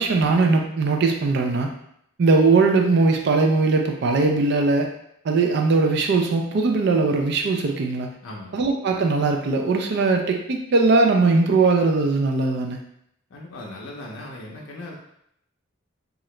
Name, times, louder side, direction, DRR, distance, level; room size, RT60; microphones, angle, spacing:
voice 1, 0.0-1.7 2.2-4.9 5.2-8.1 8.5-12.8, right 3 dB, 55° right, 3 dB, 0.4 m, -20 dB
voice 2, 8.2-8.6 13.3-14.9, left 1 dB, 70° left, -3 dB, 0.5 m, -38 dB
2.8 x 2.4 x 3.1 m, 0.73 s
head